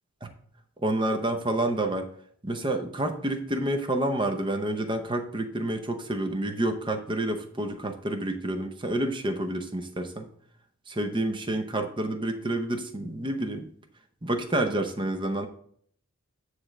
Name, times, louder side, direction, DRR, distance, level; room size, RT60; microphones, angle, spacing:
voice 1, 0.8-2.1 2.4-10.3 10.9-13.7 14.2-15.5, right 1 dB, 25° right, 5 dB, 0.8 m, -29 dB
9.7 x 3.3 x 6.2 m, 0.63 s
head